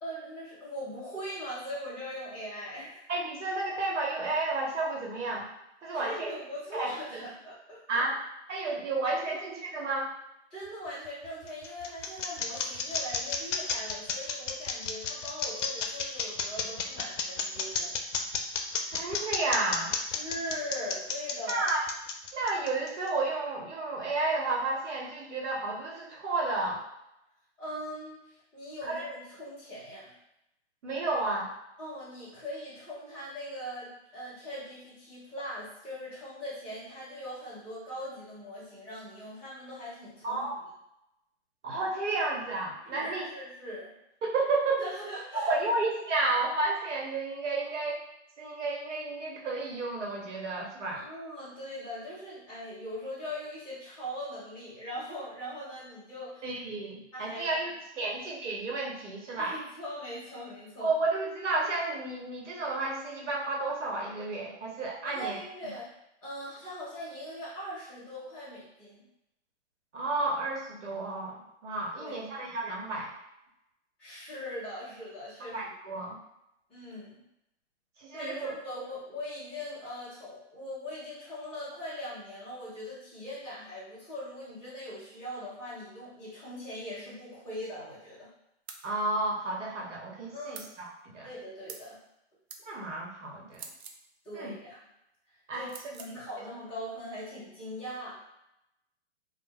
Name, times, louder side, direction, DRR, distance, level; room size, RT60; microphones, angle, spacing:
voice 1, 0.0-3.0 5.9-8.0 8.6-8.8 9.2-9.4 10.5-18.0 20.0-21.7 27.6-30.1 31.8-40.5 42.9-43.9 44.8-45.5 50.9-56.5 57.1-57.5 58.0-58.1 59.4-60.9 65.0-65.9 66.2-69.0 72.0-72.3 74.0-75.7 76.7-77.2 78.1-88.3 90.3-90.7 91.2-92.0 94.2-94.8 95.5-98.1, equal, 5° left, -14 dB, 0.4 m, -41 dB
voice 2, 3.1-5.5 5.8-6.3 6.7-7.2 7.9-8.2 8.5-10.1 18.9-19.9 21.5-21.8 22.3-26.8 28.9-29.1 30.8-31.5 40.2-40.5 41.6-43.3 44.2-44.8 45.3-48.0 48.4-51.0 56.4-59.5 60.8-65.3 69.9-73.1 75.5-76.2 78.0-78.5 88.8-90.9 91.1-91.3 92.7-93.6 94.3-94.5 95.5-95.7 96.1-96.2, right 2 dB, 80° right, -2 dB, 1.0 m, -31 dB
sound 1, 11.1-23.1, left 6 dB, 80° left, 0.5 m, -32 dB
sound 2, 88.7-88.9 90.5-90.7 91.7-91.9 92.5-92.6 93.5-94.0 95.7-96.1, right 5 dB, 60° right, 0.5 m, -45 dB
2.2 x 2.1 x 3.3 m, 0.85 s
hypercardioid pair, 150°, 36 cm